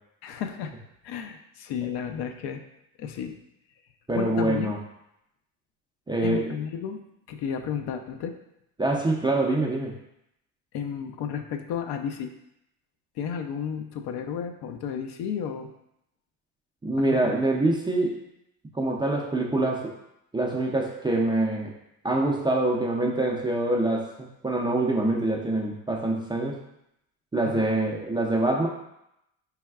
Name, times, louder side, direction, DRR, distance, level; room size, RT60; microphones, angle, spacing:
voice 1, 0.2-0.7 1.0-2.6 3.0-3.3 4.1-4.8 6.2-7.0 7.3-8.4 10.7-12.3 13.2-15.7 17.0-17.3 27.5-27.7, left 7 dB, 55° left, 6 dB, 0.5 m, -32 dB
voice 2, 4.1-4.8 6.1-6.6 8.8-9.9 16.8-18.2 18.7-19.9 20.3-21.7 22.0-26.6 27.3-28.7, right 2 dB, 10° right, -1 dB, 0.4 m, -25 dB
4.5 x 3.4 x 2.3 m, 0.81 s
hypercardioid pair, 65°, 50 cm